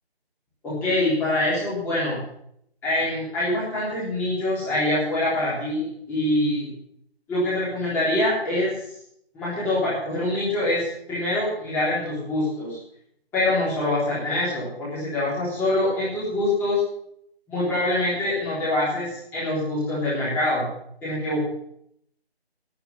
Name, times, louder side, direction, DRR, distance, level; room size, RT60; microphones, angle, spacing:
voice 1, 0.6-2.2 2.8-6.7 7.3-8.7 9.3-12.8 13.3-16.8 17.5-20.7 21.0-21.4, left 1 dB, 5° left, -9 dB, 3.6 m, -24 dB
9.7 x 9.1 x 9.5 m, 0.71 s
figure-of-eight pair, 160°, 32 cm